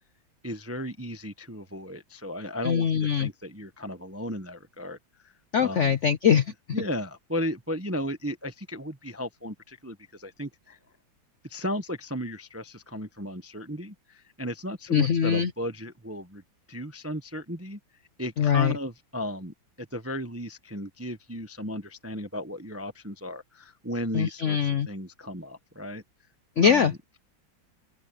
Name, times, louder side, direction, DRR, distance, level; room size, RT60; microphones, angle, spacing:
voice 1, 0.4-5.0 5.2-5.3 5.6-5.9 6.7-10.8 11.4-16.4 16.7-17.8 18.2-26.0 26.6-26.9, equal, 15° right, 0.5 m, -35 dB
voice 2, 2.6-3.3 5.5-6.5 14.9-15.5 18.4-18.8 24.1-24.9 26.6-26.9, left 7 dB, 65° left, 0.7 m, -22 dB
open air
omnidirectional pair, 2.1 m